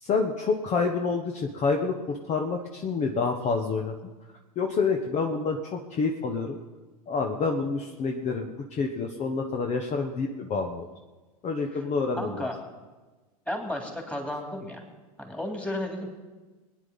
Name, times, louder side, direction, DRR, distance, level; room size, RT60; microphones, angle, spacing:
voice 1, 0.0-3.9 4.5-6.6 7.1-10.9 11.4-12.5, left 4 dB, 35° left, 3 dB, 1.3 m, -28 dB
voice 2, 12.2-12.5 13.5-14.8 15.2-16.1, left 1 dB, 5° left, 1 dB, 3.4 m, -33 dB
21.5 x 9.8 x 5.5 m, 1.3 s
hypercardioid pair, 95°, 20 cm